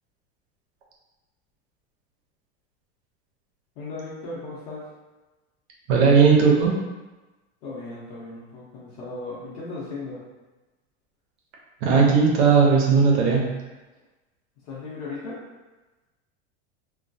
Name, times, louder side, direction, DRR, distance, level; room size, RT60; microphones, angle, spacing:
voice 1, 3.8-4.8 7.6-10.2 14.6-15.4, left 3 dB, 65° left, -8 dB, 0.7 m, -36 dB
voice 2, 5.9-6.7 11.8-13.4, right 5 dB, 85° right, -2 dB, 0.7 m, -17 dB
2.3 x 2.1 x 2.5 m, 1.1 s
supercardioid pair, 145°, 33 cm